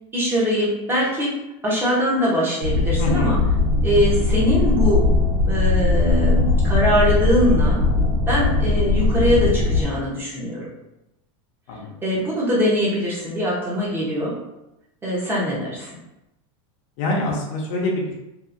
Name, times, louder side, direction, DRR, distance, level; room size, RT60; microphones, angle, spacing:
voice 1, 0.1-3.4 3.8-5.0 5.4-7.8 8.3-10.7 12.0-14.4 15.0-16.0, equal, 15° right, -6 dB, 0.8 m, -22 dB
sound 1, 2.6-9.8, left 3 dB, 60° right, 1.1 m, -19 dB
voice 2, 3.0-3.3 11.7-11.9 17.0-18.1, left 2 dB, 60° left, -2 dB, 0.7 m, -25 dB
2.8 x 2.5 x 2.5 m, 0.91 s
supercardioid pair, 150°, 17 cm